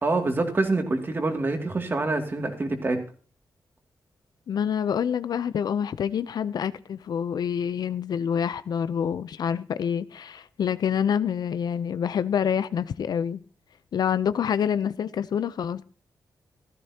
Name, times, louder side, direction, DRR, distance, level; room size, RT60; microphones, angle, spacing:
voice 1, 0.0-3.0, right 2 dB, 30° right, 2.4 m, -26 dB
voice 2, 4.5-13.4 13.9-15.8, left 8 dB, 70° left, 0.6 m, -27 dB
16.0 x 13.5 x 2.9 m
wide cardioid pair, 130°, 7 cm